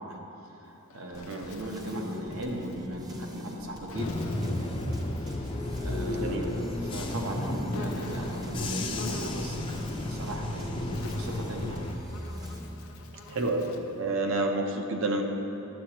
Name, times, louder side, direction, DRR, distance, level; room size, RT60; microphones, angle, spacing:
voice 1, 0.0-4.9 5.2-11.8, right 1 dB, 80° right, 0 dB, 0.9 m, -38 dB
Insect, 0.6-2.8 3.9-6.0 7.7-8.5 9.0-10.1 10.7-14.0, left 3 dB, 75° left, 0.6 m, -47 dB
sound 1, 1.1-12.6, left 1 dB, 20° right, 0.6 m, -42 dB
Bus / Engine, 3.9-11.9, left 1 dB, 25° left, 0.4 m, -33 dB
voice 2, 6.1-6.6 12.9-13.0 13.3-13.7 14.0-15.2, right 2 dB, 60° right, 3 dB, 0.6 m, -29 dB
9.3 x 7.2 x 2.9 m, 2.9 s
head